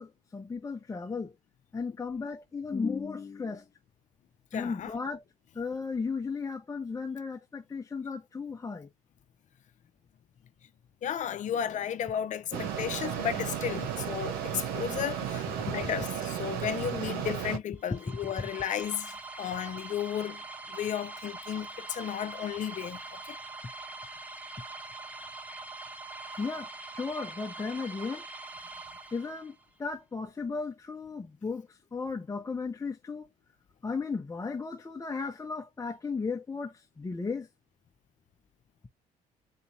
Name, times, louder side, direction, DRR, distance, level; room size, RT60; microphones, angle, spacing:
voice 1, 0.0-1.3 1.7-3.6 4.5-5.2 5.5-8.9 15.8-15.9 26.4-28.2 29.1-29.5 29.8-33.3 33.8-37.5, left 4 dB, 20° left, 0.9 m, -35 dB
voice 2, 4.5-4.9 11.0-20.4 20.7-23.3, left 9 dB, 55° left, 0.7 m, -34 dB
Mechanisms, 12.5-17.6, right 9 dB, 80° right, 1.1 m, -34 dB
sound 1, 17.8-29.6, right 3 dB, 10° right, 0.7 m, -43 dB
4.2 x 3.2 x 2.8 m
supercardioid pair, 80°, 16 cm